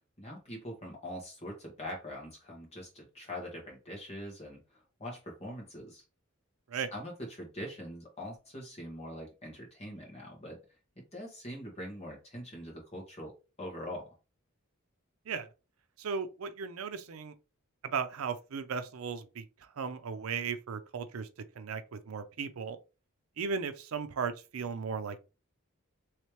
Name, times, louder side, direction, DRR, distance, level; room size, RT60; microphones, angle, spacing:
voice 1, 0.2-6.0 6.7-10.6 11.0-13.3 13.6-14.1, equal, 30° left, 1.4 m, -43 dB
voice 2, 16.0-17.3 17.8-19.5 19.8-21.3 21.6-22.8 23.4-25.2, right 6 dB, 85° right, 0.5 m, -36 dB
3.2 x 3.2 x 3.0 m
head